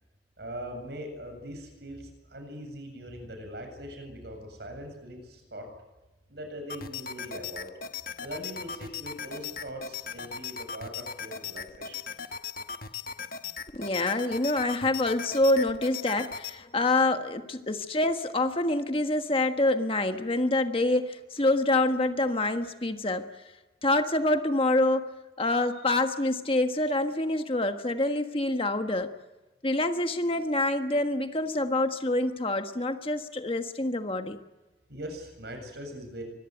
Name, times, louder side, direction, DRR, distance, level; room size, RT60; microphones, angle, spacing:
voice 1, 0.4-5.7 6.3-7.7 8.2-12.0 34.9-36.2, equal, 60° right, 5 dB, 7.8 m, -41 dB
sound 1, 6.7-16.5, left 6 dB, 50° left, 1.4 m, -38 dB
voice 2, 13.7-23.3 23.8-25.1 25.4-29.1 29.6-34.4, left 2 dB, 30° left, 7 dB, 1.4 m, -26 dB
25.0 x 22.0 x 9.2 m, 1.1 s
head